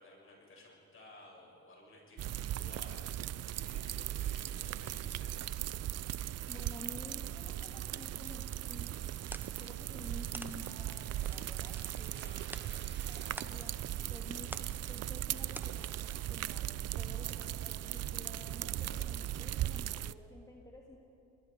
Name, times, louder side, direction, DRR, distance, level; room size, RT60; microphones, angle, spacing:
voice 1, 0.0-5.6 5.9-6.1 12.1-13.5 18.8-19.0, left 2 dB, 45° left, -1 dB, 7.5 m, -57 dB
sound 1, 2.2-20.1, right 12 dB, 55° right, 0.5 m, -38 dB
voice 2, 6.5-9.0 9.6-12.4 13.1-14.5 14.9-16.7 17.0-21.0, left 1 dB, 10° left, -3 dB, 3.2 m, -52 dB
sound 2, 7.5-13.3, right 5 dB, 35° right, 1.5 m, -62 dB
sound 3, 8.7-16.3, right 1 dB, 5° right, 0.8 m, -52 dB
29.5 x 21.0 x 5.1 m, 2.8 s
cardioid pair, 90°, 30 cm